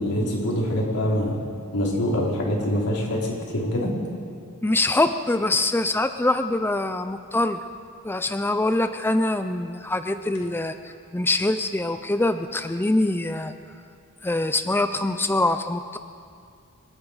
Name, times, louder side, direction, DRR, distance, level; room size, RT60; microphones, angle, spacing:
voice 1, 0.0-1.4 1.7-3.9, equal, 90° left, -3 dB, 3.8 m, -24 dB
voice 2, 4.6-7.6 8.0-10.7 11.1-13.5 14.2-16.0, left 2 dB, 10° left, 9 dB, 0.4 m, -24 dB
27.5 x 9.8 x 4.9 m, 2.3 s
head